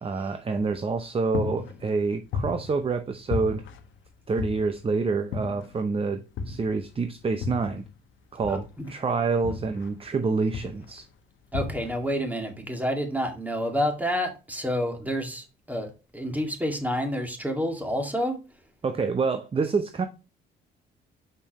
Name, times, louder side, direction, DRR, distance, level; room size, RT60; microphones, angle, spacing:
voice 1, 0.0-3.6 4.3-7.8 8.3-11.1 18.8-20.1, right 4 dB, 30° right, 0.7 m, -27 dB
sound 1, 0.6-1.0 1.3-3.0 3.3-4.9 5.3-5.9 6.4-7.9 8.4-10.2 10.5-11.0 11.5-12.1, left 5 dB, 75° left, 1.0 m, -35 dB
voice 2, 8.5-8.9 11.5-15.9 16.1-18.4, equal, 10° right, 2.1 m, -29 dB
6.7 x 5.4 x 3.0 m
cardioid pair, 90°, 20 cm